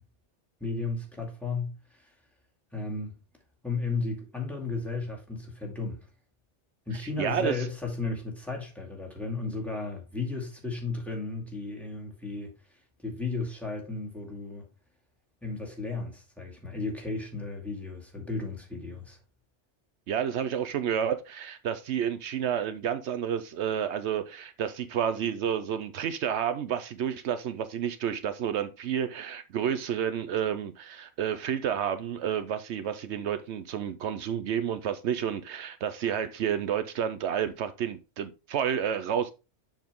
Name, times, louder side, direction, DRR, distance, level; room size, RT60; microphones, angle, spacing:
voice 1, 0.6-2.1 2.7-3.2 3.6-6.1 6.9-14.7 15.4-19.2, left 3 dB, ahead, 2.3 m, -34 dB
voice 2, 7.2-7.6 20.1-39.3, right 8 dB, 75° right, 0.9 m, -30 dB
7.2 x 5.9 x 3.6 m
omnidirectional pair, 1.2 m